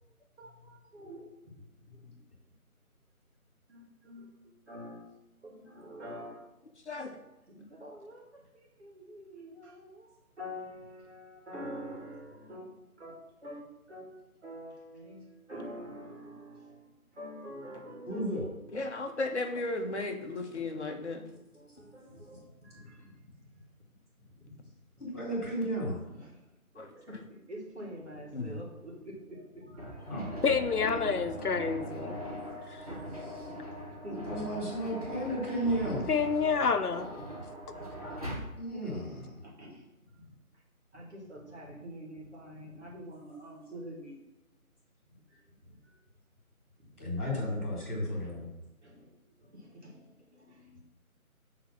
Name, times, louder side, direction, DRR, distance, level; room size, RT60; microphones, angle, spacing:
voice 1, 0.4-2.2 3.7-4.3 4.7-5.1 5.4-6.5 7.5-18.7 21.0-23.3 24.4-24.7 25.0-25.1 26.1-26.5 26.7-30.4 30.8-31.2 32.7-32.8 34.0-35.4 36.6-36.7 37.8-38.0 39.0-39.8 40.1-40.6 40.9-44.2 45.3-45.5 45.8-46.0 46.8-46.9 48.1-48.2 48.8-50.8, equal, 50° right, -2 dB, 2.2 m, -47 dB
voice 2, 18.1-18.4 25.0-26.0 30.1-30.3 33.1-33.5 34.1-36.1 38.6-39.4 47.0-48.5, equal, 10° left, -12 dB, 2.3 m, -34 dB
voice 3, 18.7-21.2 26.8-26.9 28.3-28.6, left 2 dB, 50° left, 3 dB, 1.1 m, -35 dB
sound 1, 29.8-38.4, equal, 25° right, 1.0 m, -40 dB
voice 4, 30.4-32.2 32.7-32.9 35.9-37.1, left 5 dB, 90° left, 8 dB, 0.8 m, -29 dB
7.1 x 3.8 x 5.9 m, 0.97 s
figure-of-eight pair, 170°, 44 cm